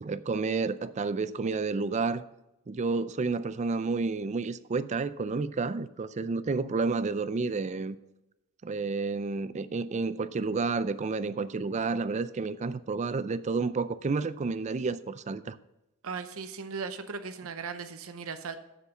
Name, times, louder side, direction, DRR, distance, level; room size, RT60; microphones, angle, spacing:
voice 1, 0.0-2.2 2.7-8.0 8.6-15.6, right 4 dB, 30° right, 14 dB, 0.4 m, -30 dB
voice 2, 16.0-18.6, right 5 dB, 70° right, 9 dB, 0.7 m, -37 dB
7.3 x 6.7 x 7.0 m, 0.92 s
head